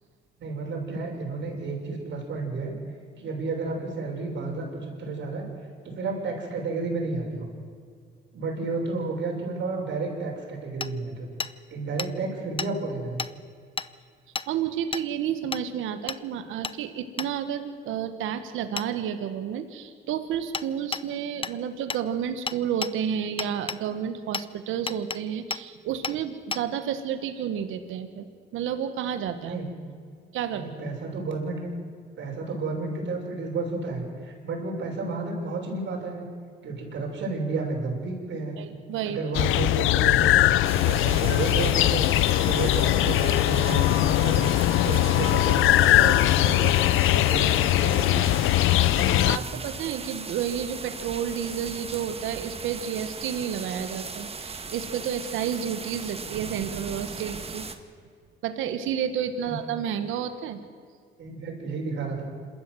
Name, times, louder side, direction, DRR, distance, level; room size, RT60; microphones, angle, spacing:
voice 1, 0.4-2.7 3.2-5.5 5.8-7.5 8.3-11.3 11.7-13.2 29.4-29.7 30.5-31.7 32.2-36.2 36.6-38.5 39.0-40.5 40.8-44.5 44.8-46.8 47.1-48.3 48.8-49.6 59.4-59.6 61.2-62.2, right 3 dB, 65° right, 0 dB, 6.3 m, -31 dB
Hammer, 10.8-10.9 11.4-11.5 12.0-12.1 12.6-12.7 13.2-13.3 13.8-13.9 14.3-14.5 14.9-15.1 15.5-15.6 16.1-16.2 16.6-16.8 17.2-17.3 18.8-18.9 20.5-20.7 20.9-21.0 21.4-21.6 21.9-22.0 22.5-22.9 23.4-23.8 24.3-24.5 24.9-25.2 25.5-25.6 26.0-26.2 26.5-26.6, left 5 dB, 25° left, 0.6 m, -31 dB
voice 2, 14.5-28.3 28.5-29.6 30.3-30.6 38.6-39.2 49.2-57.7 58.4-60.6, right 9 dB, 90° right, 9 dB, 1.4 m, -31 dB
sound 1, 39.3-49.4, left 15 dB, 85° left, 0.5 m, -21 dB
sound 2, 40.6-57.8, right 4 dB, 30° right, 1.6 m, -38 dB
27.0 x 13.5 x 7.9 m, 2.1 s
cardioid pair, 90°, 20 cm